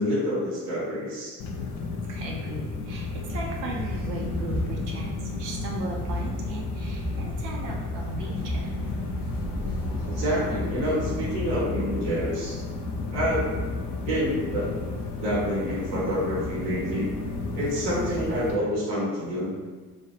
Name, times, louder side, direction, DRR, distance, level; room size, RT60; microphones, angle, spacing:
voice 1, 0.0-1.4 10.1-12.6 13.1-13.5 14.0-14.7 15.2-17.1 17.5-19.5, equal, 75° right, -5 dB, 0.8 m, -27 dB
sound 1, 1.4-18.6, left 4 dB, 40° left, 0.5 m, -33 dB
voice 2, 1.9-8.9, right 2 dB, 45° right, -1 dB, 0.5 m, -37 dB
sound 2, 2.9-18.6, equal, 5° right, 0.7 m, -36 dB
2.2 x 2.0 x 2.7 m, 1.3 s
figure-of-eight pair, 45°, 46 cm